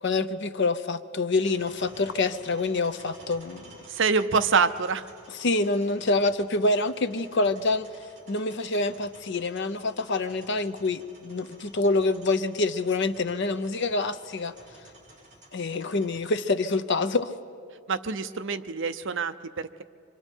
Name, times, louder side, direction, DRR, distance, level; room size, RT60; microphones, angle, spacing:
voice 1, 0.0-3.8 5.3-7.9 8.3-14.5 15.5-17.3, left 3 dB, 55° left, 11 dB, 0.7 m, -26 dB
sound 1, 1.4-16.3, right 1 dB, 35° right, 5.2 m, -53 dB
voice 2, 3.9-5.0 17.9-19.8, right 5 dB, 55° right, 11 dB, 0.6 m, -26 dB
25.5 x 25.0 x 4.5 m, 2.4 s
head